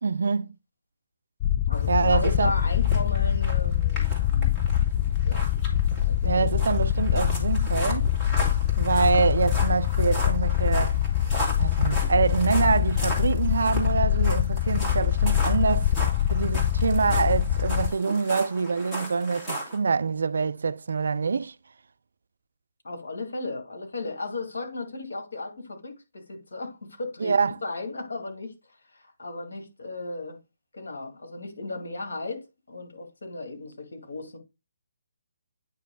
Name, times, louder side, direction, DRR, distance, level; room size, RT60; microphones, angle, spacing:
voice 1, 0.0-0.5 1.9-2.5 6.2-8.1 8.8-11.0 11.6-15.9 16.3-21.5 27.2-27.5, right 4 dB, 70° right, 0.4 m, -25 dB
sound 1, 1.4-17.9, left 11 dB, 30° left, 0.4 m, -24 dB
voice 2, 1.7-4.5 5.2-5.4 6.0-6.6 22.8-27.4 27.6-28.5 28.9-30.4 30.7-34.4, left 2 dB, 65° left, 2.3 m, -35 dB
sound 2, 1.7-19.8, right 1 dB, 15° left, 2.2 m, -37 dB
9.1 x 3.2 x 3.8 m
figure-of-eight pair, 140°, 0 cm